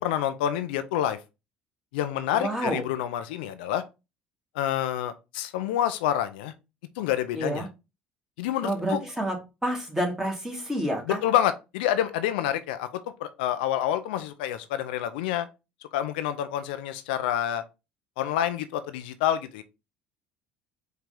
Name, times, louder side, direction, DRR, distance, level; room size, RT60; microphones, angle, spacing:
voice 1, 0.0-1.2 1.9-3.8 4.5-6.5 7.0-7.7 8.4-9.0 11.1-12.9 13.2-15.5 15.9-17.6 18.2-19.6, left 11 dB, 75° left, 0.4 m, -28 dB
voice 2, 2.3-2.8 7.4-7.7 8.6-9.4 9.6-11.2, right 1 dB, 5° right, 1.9 m, -28 dB
4.6 x 2.8 x 3.6 m
hypercardioid pair, 60°, 5 cm